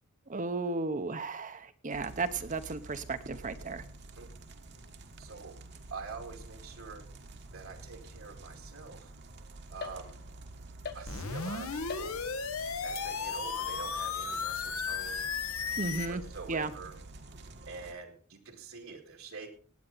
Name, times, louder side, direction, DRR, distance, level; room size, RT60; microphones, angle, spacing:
voice 1, 0.3-3.8 15.8-16.2 16.5-16.7, right 3 dB, 40° right, 11 dB, 0.9 m, -34 dB
sound 1, 1.9-17.9, right 2 dB, 55° right, 1.4 m, -49 dB
voice 2, 5.2-5.6 5.9-7.0 7.5-9.1 9.7-10.1 10.9-12.2 12.8-15.3 16.1-17.0 17.7-19.5, right 4 dB, 75° right, 4 dB, 2.3 m, -45 dB
sound 2, 9.8-10.5 10.8-11.5 11.9-12.6 12.9-16.4, left 6 dB, 50° left, 1.4 m, -47 dB
sound 3, 11.1-16.1, left 5 dB, 80° left, 1.3 m, -35 dB
18.0 x 9.0 x 4.0 m, 0.41 s
head